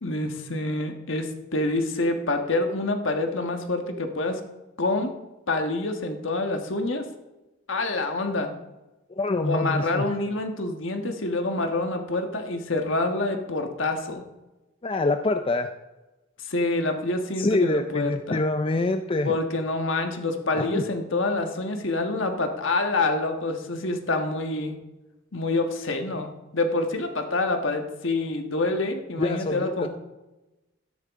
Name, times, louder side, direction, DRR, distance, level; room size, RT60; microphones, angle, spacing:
voice 1, 0.0-4.4 4.8-5.1 5.5-7.1 7.7-8.5 9.4-14.2 16.4-18.4 19.2-24.7 25.3-29.9, left 2 dB, 65° left, 5 dB, 1.4 m, -27 dB
voice 2, 9.1-10.1 14.8-15.7 17.4-19.4 20.5-20.8 29.2-29.9, left 2 dB, 25° left, 7 dB, 0.4 m, -25 dB
13.0 x 10.5 x 3.6 m, 1.1 s
head